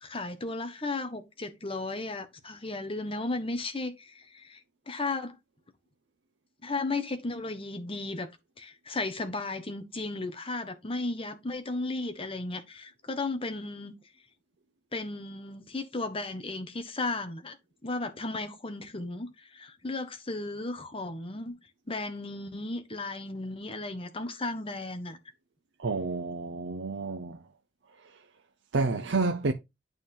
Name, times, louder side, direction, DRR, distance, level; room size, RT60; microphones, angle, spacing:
voice 1, 0.0-4.6 4.9-5.4 6.6-8.3 8.6-13.9 14.9-17.6 17.8-21.6 21.9-25.2, left 2 dB, 30° left, 1.1 m, -35 dB
voice 2, 25.8-27.4 28.7-29.5, right 3 dB, 90° right, 0.6 m, -29 dB
8.9 x 3.5 x 4.4 m
head